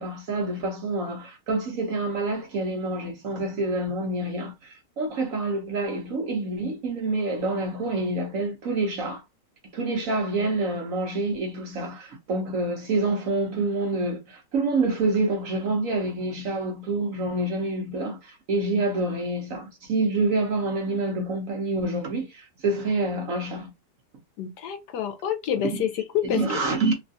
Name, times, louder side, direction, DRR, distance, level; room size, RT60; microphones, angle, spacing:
voice 1, 0.0-9.2 9.7-23.7 25.7-25.9 26.2-26.9, right 2 dB, 60° right, 0.9 m, -27 dB
voice 2, 24.4-26.4, left 9 dB, 75° left, 1.1 m, -28 dB
3.1 x 2.3 x 2.6 m
omnidirectional pair, 1.9 m